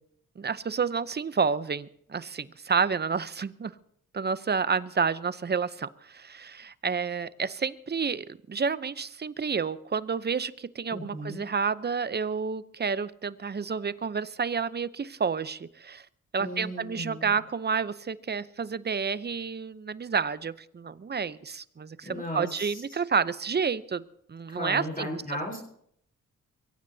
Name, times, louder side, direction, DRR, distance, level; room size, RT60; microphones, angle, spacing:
voice 1, 0.4-3.7 4.1-16.1 16.3-24.0 24.3-25.1, right 5 dB, 30° right, 16 dB, 0.7 m, -30 dB
voice 2, 10.9-11.4 16.4-17.4 22.0-22.8 24.5-25.6, left 1 dB, 25° left, 0 dB, 4.2 m, -36 dB
23.5 x 16.0 x 2.8 m, 0.67 s
cardioid pair, 75°, 33 cm